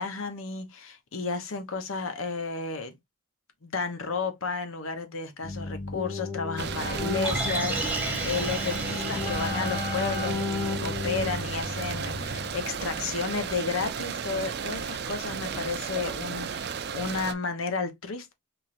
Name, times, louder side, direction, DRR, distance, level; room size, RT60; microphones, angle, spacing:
voice 1, 0.0-2.9 3.6-18.3, left 4 dB, 70° left, 0.9 m, -32 dB
Keyboard (musical), 5.4-12.7, left 3 dB, 15° left, 1.0 m, -34 dB
sound 1, 6.6-17.3, right 6 dB, 50° right, 0.4 m, -34 dB
sound 2, 7.2-11.4 11.8-11.9, right 2 dB, 5° right, 0.8 m, -34 dB
4.4 x 3.2 x 2.6 m
head